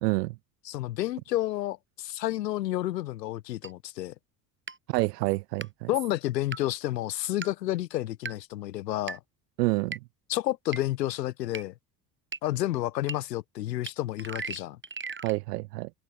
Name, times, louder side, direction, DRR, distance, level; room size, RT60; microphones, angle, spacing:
voice 1, 0.0-0.3 4.9-5.9 9.6-10.0 15.2-15.9, right 21 dB, 75° right, 0.6 m, -28 dB
voice 2, 0.6-4.1 5.9-9.2 10.3-11.7 12.4-14.8, left 15 dB, 85° left, 1.0 m, -30 dB
sound 1, 3.6-3.7 4.7-4.8 5.6-5.7 6.5-6.6 7.4-7.5 8.2-8.3 9.1-9.2 9.9-10.0 10.7-10.8 11.5-11.6 12.3-12.4 13.1-13.2 13.9-14.0 14.2-15.4, right 4 dB, 25° right, 7.7 m, -36 dB
hypercardioid pair, 65°, 48 cm